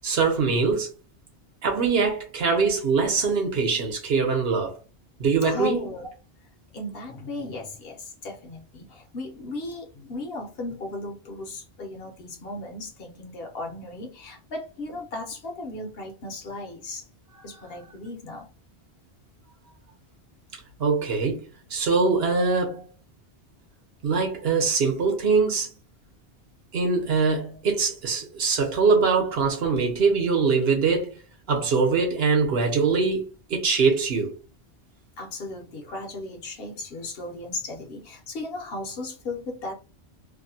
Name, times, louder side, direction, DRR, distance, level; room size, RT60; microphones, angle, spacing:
voice 1, 0.0-0.9 1.6-4.8 5.2-5.9 20.8-21.4 21.7-22.9 24.0-25.7 26.7-31.1 31.5-34.3, right 4 dB, 65° right, 1.0 m, -23 dB
voice 2, 5.4-6.1 6.7-17.1 17.4-18.5 35.2-39.7, left 2 dB, 60° left, 0.9 m, -36 dB
2.6 x 2.1 x 2.7 m
omnidirectional pair, 1.1 m